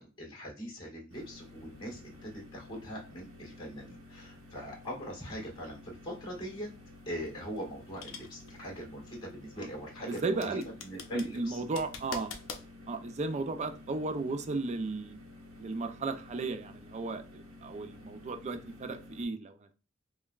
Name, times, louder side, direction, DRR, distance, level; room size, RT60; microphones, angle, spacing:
voice 1, 0.0-6.7 7.0-11.6, equal, 25° left, 1.6 m, -42 dB
sound 1, 1.1-19.2, left 2 dB, 85° right, 0.8 m, -52 dB
sound 2, 7.0-12.7, left 5 dB, 70° left, 0.5 m, -46 dB
voice 2, 10.1-10.6 11.1-12.3 12.9-15.2 15.6-19.8, right 3 dB, 35° right, 0.4 m, -35 dB
5.2 x 2.1 x 2.3 m
head